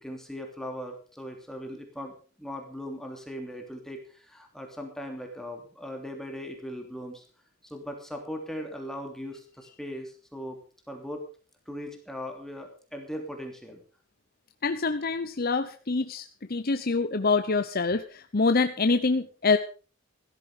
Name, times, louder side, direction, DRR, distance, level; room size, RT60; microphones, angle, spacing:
voice 1, 0.0-7.2 7.6-10.6 10.9-11.2 11.7-13.8 15.6-15.7, equal, ahead, 2 dB, 3.0 m, -39 dB
voice 2, 14.6-19.6, left 4 dB, 50° left, 8 dB, 0.9 m, -25 dB
16.0 x 13.5 x 5.0 m, 0.37 s
head